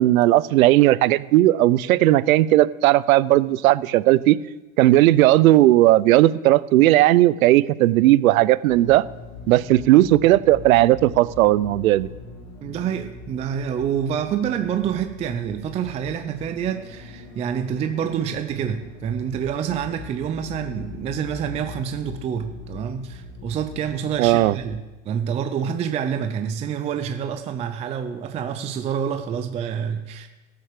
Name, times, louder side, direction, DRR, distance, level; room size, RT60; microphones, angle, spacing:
voice 1, 0.0-4.4 4.8-9.0 9.5-12.1 24.2-24.5, right 15 dB, 85° right, 19 dB, 0.6 m, -16 dB
sound 1, 8.6-24.8, left 4 dB, 80° left, 2.4 m, -41 dB
voice 2, 12.6-30.3, right 8 dB, 15° right, 7 dB, 0.4 m, -27 dB
12.5 x 6.9 x 6.6 m, 1.1 s
supercardioid pair, 140°, 40 cm